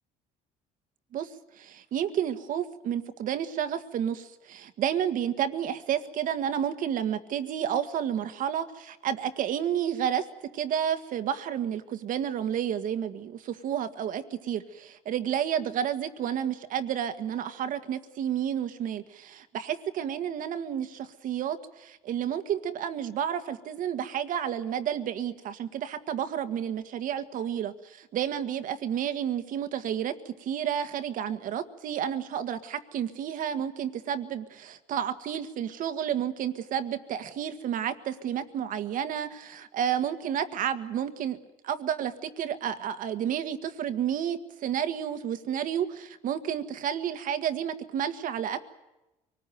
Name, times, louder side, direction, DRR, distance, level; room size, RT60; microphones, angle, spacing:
voice 1, 1.6-10.3 10.5-41.4 41.6-48.6, right 9 dB, 60° right, 10 dB, 1.8 m, -31 dB
24.5 x 19.5 x 9.3 m, 0.98 s
supercardioid pair, 85°, 15 cm